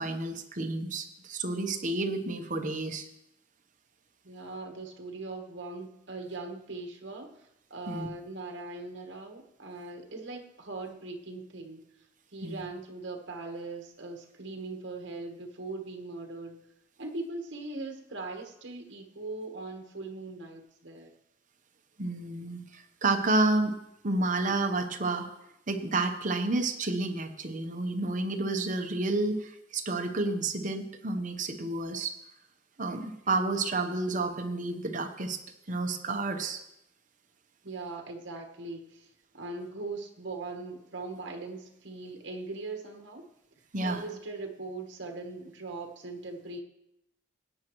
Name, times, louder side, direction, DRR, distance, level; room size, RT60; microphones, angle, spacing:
voice 1, 0.0-3.1 7.9-8.1 12.4-12.6 22.0-23.8 24.0-25.3 25.7-32.1 32.8-35.4 35.7-36.6 43.7-44.0, right 2 dB, 40° right, 6 dB, 0.9 m, -30 dB
voice 2, 4.2-11.8 12.3-16.6 17.0-21.1 37.6-39.1 39.3-43.2 43.8-46.6, right 3 dB, 60° right, 3 dB, 1.2 m, -40 dB
16.5 x 8.9 x 3.1 m, 0.82 s
head